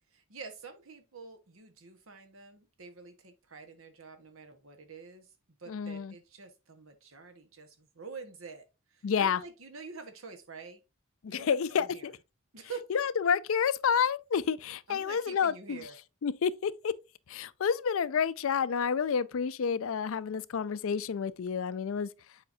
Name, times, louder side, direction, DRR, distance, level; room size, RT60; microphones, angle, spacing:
voice 1, 0.1-5.3 5.6-8.6 8.9-10.8 11.3-12.1 12.5-12.9 14.9-16.0, right 4 dB, 70° right, 1.3 m, -47 dB
voice 2, 5.7-6.1 9.0-9.4 11.2-12.1 12.9-15.9 16.2-16.9 17.3-22.1, left 6 dB, 70° left, 0.4 m, -29 dB
7.7 x 5.1 x 2.7 m
head